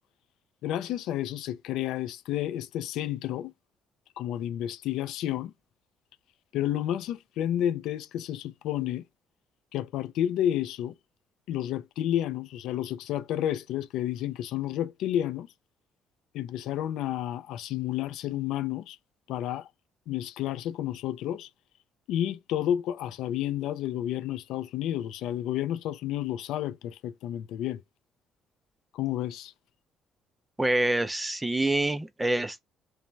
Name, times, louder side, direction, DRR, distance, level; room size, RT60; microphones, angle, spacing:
voice 1, 0.6-3.5 4.2-5.5 6.5-9.0 9.7-10.9 11.5-15.5 16.3-19.0 19.3-19.7 20.1-21.5 22.1-27.8 28.9-29.5, left 11 dB, 85° left, 0.4 m, -31 dB
voice 2, 30.6-32.6, right 1 dB, 10° right, 0.3 m, -26 dB
3.2 x 2.1 x 2.6 m
cardioid pair, 145°, 0 cm